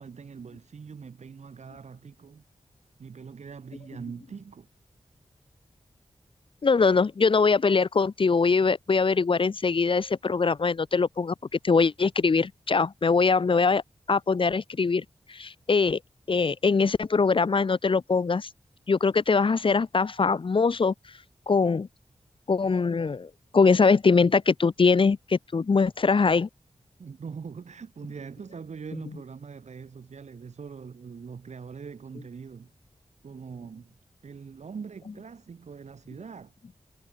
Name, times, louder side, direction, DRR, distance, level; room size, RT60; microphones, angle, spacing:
voice 1, 0.0-2.4 3.0-4.7 27.0-32.7 33.2-34.0 34.2-36.5, right 5 dB, 85° right, 7.5 m, -42 dB
voice 2, 6.6-13.8 14.1-16.0 16.3-18.5 18.9-20.9 21.5-21.9 22.5-26.5, left 4 dB, 50° left, 0.7 m, -22 dB
cardioid pair, 60°, 11 cm